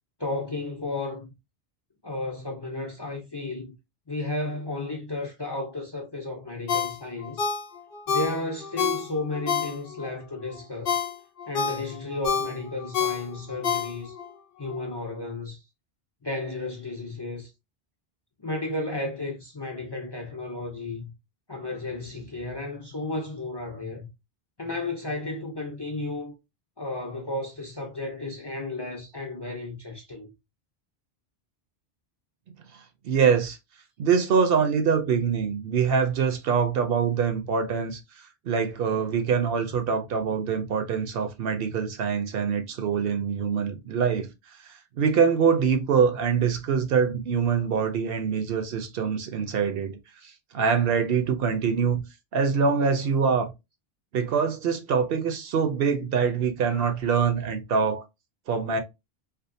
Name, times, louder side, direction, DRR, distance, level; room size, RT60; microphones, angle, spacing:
voice 1, 0.2-1.3 2.0-3.8 4.1-7.5 8.1-11.0 11.5-14.2 14.6-15.6 16.2-17.5 18.4-21.1 21.5-24.1 24.6-26.3 26.8-30.3, left 2 dB, 35° left, 0.5 m, -33 dB
Ringtone, 6.7-10.1 10.5-14.3 14.7-14.8, left 6 dB, 65° left, 0.7 m, -28 dB
voice 2, 33.0-33.6 34.0-38.0 38.5-44.3 44.7-52.0 52.3-53.5 54.1-58.0 58.5-58.8, right 6 dB, 70° right, 0.7 m, -24 dB
2.5 x 2.3 x 2.6 m
omnidirectional pair, 1.0 m